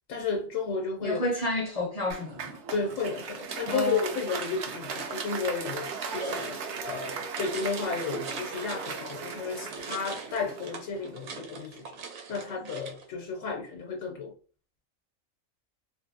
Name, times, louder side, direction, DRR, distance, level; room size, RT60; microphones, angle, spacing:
voice 1, 0.1-1.2 2.7-6.6 6.8-11.9 12.3-14.3, left 4 dB, 80° left, 0.9 m, -33 dB
voice 2, 1.0-2.6 3.7-4.1, left 1 dB, 45° left, 0.5 m, -30 dB
Applause, 2.1-11.4, right 5 dB, 65° right, 0.8 m, -38 dB
sound 1, 3.3-9.2 9.5-13.1, right 5 dB, 90° right, 1.1 m, -42 dB
2.5 x 2.5 x 2.5 m
omnidirectional pair, 1.4 m